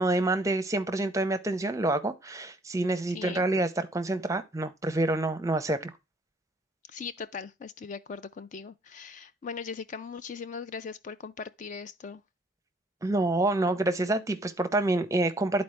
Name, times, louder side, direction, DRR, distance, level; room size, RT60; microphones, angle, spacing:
voice 1, 0.0-5.9 13.0-15.6, right 2 dB, 15° right, 0.6 m, -27 dB
voice 2, 6.9-12.2, left 5 dB, 40° left, 0.3 m, -39 dB
11.0 x 4.3 x 3.2 m
head